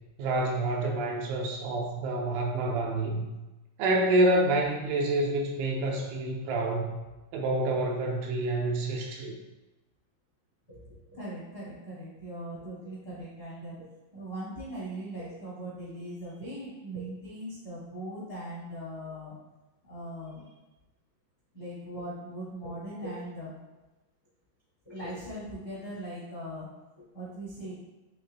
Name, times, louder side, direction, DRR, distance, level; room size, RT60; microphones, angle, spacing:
voice 1, 0.2-3.3 3.8-6.9 7.3-9.3, right 2 dB, 85° right, -1 dB, 3.1 m, -27 dB
voice 2, 10.7-13.9 14.1-19.3 19.8-20.4 21.5-23.6 24.8-26.7 27.0-27.7, right 1 dB, 65° left, -8 dB, 0.9 m, -40 dB
8.7 x 3.5 x 3.2 m, 1.0 s
omnidirectional pair, 5.6 m